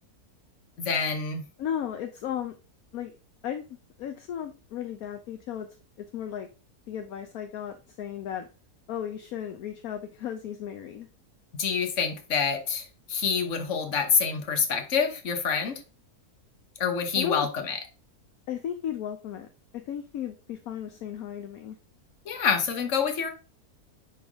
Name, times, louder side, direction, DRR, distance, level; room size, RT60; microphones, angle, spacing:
voice 1, 0.8-1.4 11.6-15.8 16.8-17.8 22.2-23.3, left 6 dB, 55° left, 6 dB, 1.4 m, -27 dB
voice 2, 1.6-2.6 2.9-3.1 3.4-3.6 4.0-5.7 6.0-6.5 6.9-8.5 8.9-11.1 17.1-17.5 18.5-19.5 19.7-21.8, left 9 dB, 70° left, 6 dB, 1.1 m, -35 dB
10.0 x 3.5 x 3.5 m, 0.33 s
omnidirectional pair, 1.7 m